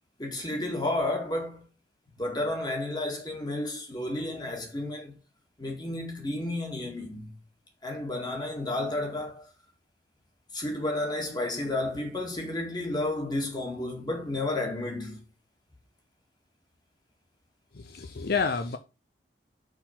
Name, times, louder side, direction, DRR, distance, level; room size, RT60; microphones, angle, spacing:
voice 1, 0.2-1.7 2.2-5.1 5.6-7.3 7.8-9.5 10.5-15.2, left 2 dB, 25° left, 2.1 m, -32 dB
voice 2, 17.7-18.8, left 5 dB, 60° left, 0.6 m, -29 dB
6.2 x 4.4 x 5.8 m
head